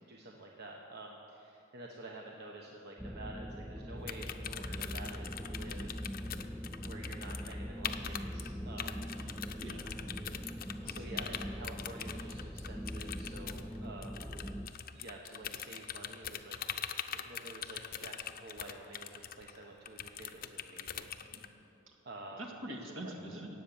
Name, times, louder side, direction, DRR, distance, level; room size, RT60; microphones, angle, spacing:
voice 1, 0.1-6.1 6.8-9.1 10.8-14.3 14.9-16.6 17.1-21.6 22.0-22.8 23.0-23.1, right 2 dB, 55° right, 0 dB, 1.0 m, -49 dB
sound 1, 3.0-14.7, equal, 5° right, 0.4 m, -42 dB
sound 2, 4.1-7.5 7.8-8.5 8.8-21.5, left 9 dB, 45° left, 0.6 m, -42 dB
voice 2, 8.0-8.3 9.2-10.0 10.8-11.4 21.3-21.4 22.4-23.5, right 1 dB, 70° right, 1 dB, 2.0 m, -46 dB
17.5 x 8.0 x 7.1 m, 2.8 s
head